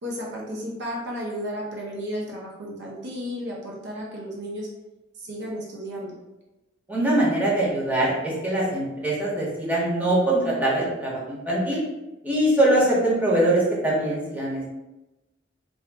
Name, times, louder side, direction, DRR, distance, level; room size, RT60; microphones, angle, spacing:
voice 1, 0.0-4.7 5.1-6.1, equal, 60° right, -3 dB, 0.8 m, -33 dB
voice 2, 6.9-11.8 12.2-14.6, right 1 dB, 10° right, -6 dB, 0.8 m, -22 dB
2.5 x 2.5 x 3.4 m, 1.0 s
head